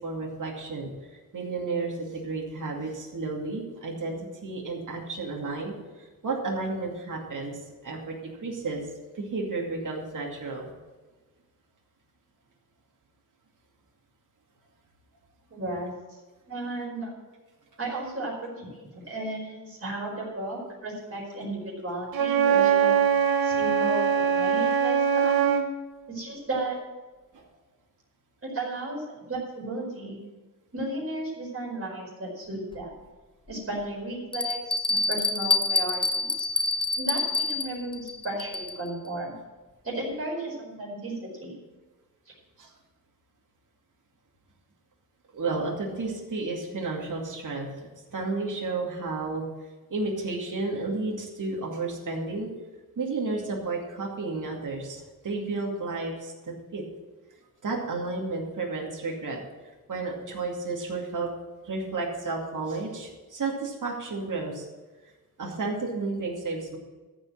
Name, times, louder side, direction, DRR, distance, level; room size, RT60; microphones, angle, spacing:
voice 1, 0.0-4.2 4.4-8.8 9.1-10.7 27.3-27.4 42.6-42.7 45.3-47.7 48.1-49.4 49.9-52.5 53.0-56.8 57.6-59.4 59.9-61.3 61.6-64.7 65.4-66.8, right 3 dB, 60° right, -1 dB, 2.5 m, -32 dB
voice 2, 15.5-16.2 16.5-17.1 17.8-23.0 23.4-25.5 26.1-26.8 28.4-30.2 30.7-32.9 33.5-36.5 37.0-39.3 39.8-41.6, right 1 dB, 40° right, -3 dB, 4.8 m, -34 dB
Wind instrument woodwind instrument, 22.1-25.7, right 7 dB, 85° right, 1.4 m, -22 dB
Bell, 32.7-32.8 33.5-33.6 34.3-38.9, left 3 dB, 15° left, 0.4 m, -27 dB
14.0 x 5.5 x 7.8 m, 1.2 s
wide cardioid pair, 140°, 35 cm